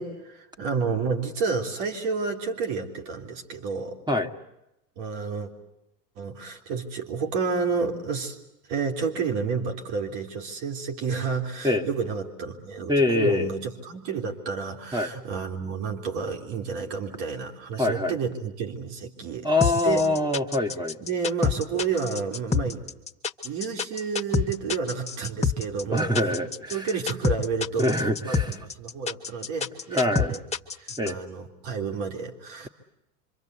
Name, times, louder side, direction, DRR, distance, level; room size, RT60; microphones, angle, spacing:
voice 1, 0.0-4.0 5.0-5.5 6.2-8.4 8.7-19.5 19.8-20.0 21.0-22.8 23.4-26.3 26.7-30.4 30.8-32.7, right 5 dB, 55° right, 3 dB, 3.3 m, -30 dB
voice 2, 12.9-13.5 14.9-15.1 17.8-18.2 19.4-21.0 25.9-26.9 27.8-28.5 29.9-30.4 31.0-31.2, left 2 dB, 10° right, 6 dB, 1.7 m, -24 dB
sound 1, 19.6-31.1, left 5 dB, 15° left, 1.7 m, -27 dB
26.0 x 25.5 x 8.2 m, 0.87 s
hypercardioid pair, 100°, 48 cm